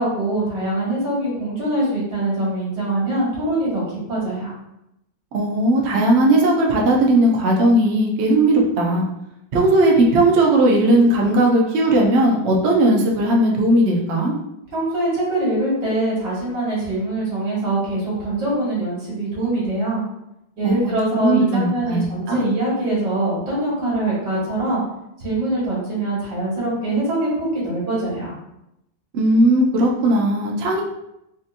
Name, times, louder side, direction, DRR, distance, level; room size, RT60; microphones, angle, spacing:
voice 1, 0.0-4.5 14.7-20.0 20.6-24.8 25.2-28.3, right 1 dB, 65° right, -7 dB, 2.1 m, -23 dB
voice 2, 5.3-9.0 9.5-14.3 20.6-22.5 29.1-30.8, right 1 dB, 85° right, -1 dB, 0.5 m, -17 dB
4.0 x 2.6 x 2.5 m, 0.85 s
omnidirectional pair, 2.0 m